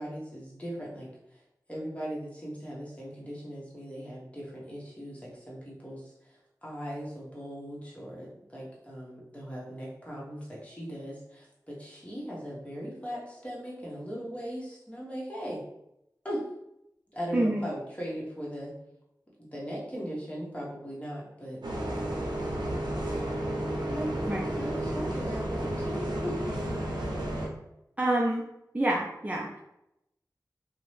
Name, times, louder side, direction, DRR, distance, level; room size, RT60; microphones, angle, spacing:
voice 1, 0.0-1.4 1.7-15.6 16.2-16.4 17.1-18.7 19.4-21.6 22.4-22.9 23.9-26.4, equal, 20° left, -5 dB, 1.0 m, -39 dB
voice 2, 17.3-17.6 24.3-24.5 28.0-28.5 28.7-29.6, right 1 dB, 20° right, -3 dB, 0.4 m, -27 dB
Bus, 21.6-27.5, right 1 dB, 85° right, 0.6 m, -32 dB
2.6 x 2.0 x 3.1 m, 0.84 s
wide cardioid pair, 55°, 7 cm